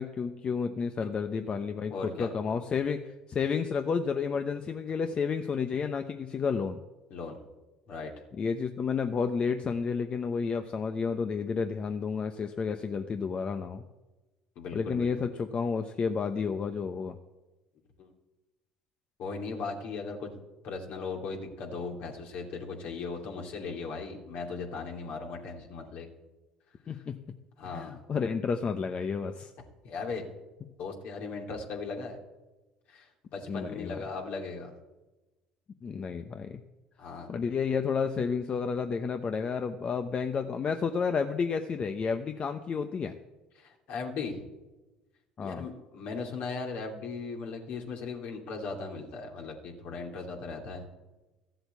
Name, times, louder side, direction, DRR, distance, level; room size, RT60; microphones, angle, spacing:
voice 1, 0.0-1.9 2.2-3.0 3.3-6.8 8.4-13.8 14.7-17.1 26.9-27.2 27.7-29.5 33.5-34.0 35.8-36.6 37.3-43.1 45.4-45.7, left 5 dB, 40° left, 7 dB, 0.9 m, -31 dB
voice 2, 1.9-2.3 7.1-7.4 7.9-8.1 14.6-15.1 18.0-18.1 19.2-26.1 26.9-27.0 27.6-28.0 29.8-30.2 30.8-32.2 32.9-34.7 37.0-37.3 43.6-44.4 45.4-50.8, left 4 dB, 65° left, 1 dB, 2.8 m, -38 dB
14.0 x 7.8 x 8.3 m, 1.1 s
hypercardioid pair, 70°, 3 cm